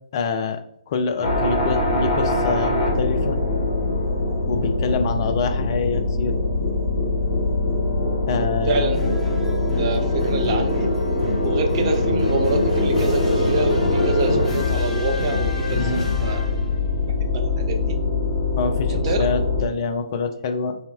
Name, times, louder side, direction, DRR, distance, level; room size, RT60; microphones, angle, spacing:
voice 1, 0.1-0.6 0.9-3.4 4.5-6.4 8.3-8.9 15.7-16.1 18.6-20.8, left 5 dB, 30° left, 6 dB, 0.3 m, -26 dB
sound 1, 1.2-19.6, left 2 dB, 55° left, 0.8 m, -22 dB
voice 2, 8.7-9.0 9.7-11.0 11.4-16.4 17.0-18.0 18.9-19.3, right 3 dB, 30° right, 3 dB, 0.4 m, -27 dB
sound 2, 8.9-16.8, left 2 dB, 5° left, 0.7 m, -30 dB
4.1 x 2.0 x 2.3 m, 0.73 s
figure-of-eight pair, 135°, 4 cm